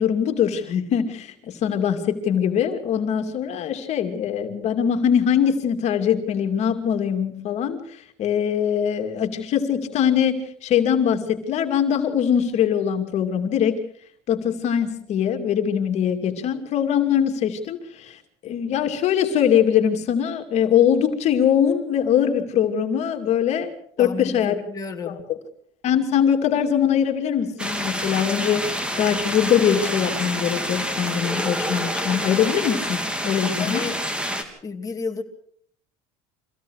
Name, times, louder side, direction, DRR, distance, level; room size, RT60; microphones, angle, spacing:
voice 1, 0.0-7.8 8.2-13.8 14.3-18.2 18.4-23.7 24.0-24.5 25.1-25.2 25.8-28.7 29.0-33.9, left 8 dB, 55° left, 6 dB, 2.6 m, -22 dB
voice 2, 24.0-25.2 33.6-34.0 34.6-35.2, left 4 dB, 25° left, 3 dB, 2.5 m, -31 dB
sound 1, 27.6-34.4, equal, 5° right, 3.4 m, -27 dB
25.0 x 16.5 x 6.5 m, 0.63 s
supercardioid pair, 100°, 14 cm